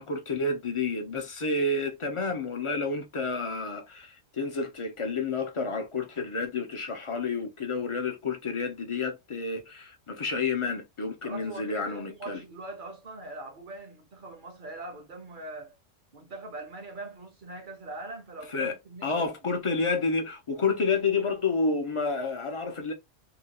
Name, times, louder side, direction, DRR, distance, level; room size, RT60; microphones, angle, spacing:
voice 1, 0.0-12.4 18.5-18.7 19.0-22.9, left 4 dB, 45° left, 0.4 m, -30 dB
voice 2, 11.2-15.8 16.1-19.3, right 2 dB, 50° right, 0.7 m, -42 dB
2.8 x 2.2 x 2.8 m
omnidirectional pair, 1.4 m